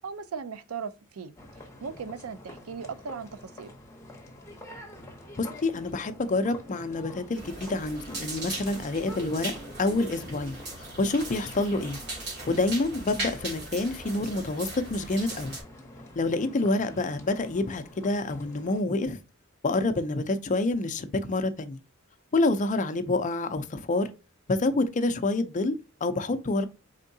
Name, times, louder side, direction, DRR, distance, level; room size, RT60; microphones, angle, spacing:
voice 1, 0.0-1.3 1.8-3.7, right 5 dB, 70° right, 0.5 m, -37 dB
sound 1, 1.4-18.8, left 1 dB, 15° left, 0.9 m, -47 dB
voice 2, 5.4-9.5 9.8-12.0 12.5-15.6 16.2-19.2 19.6-21.8 22.3-24.1 24.5-26.7, left 2 dB, 35° left, 0.5 m, -27 dB
sound 2, 7.3-15.6, right 2 dB, 50° right, 2.5 m, -39 dB
4.5 x 3.6 x 2.6 m
head